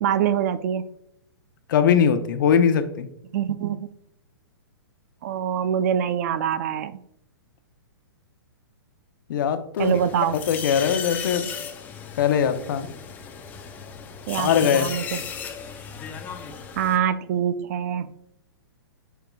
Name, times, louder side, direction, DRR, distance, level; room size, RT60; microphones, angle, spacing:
voice 1, 0.0-0.8 3.3-3.8 5.2-6.9 9.8-10.3 14.3-15.2 16.8-18.1, right 9 dB, 40° right, 14 dB, 0.4 m, -24 dB
voice 2, 1.7-3.1 9.3-10.0 10.5-11.5 12.2-12.9 14.4-14.9, left 8 dB, 55° left, 9 dB, 0.7 m, -21 dB
sound 1, 9.8-17.0, left 7 dB, 15° left, 0.5 m, -35 dB
9.0 x 4.7 x 2.3 m, 0.76 s
hypercardioid pair, 155°, 13 cm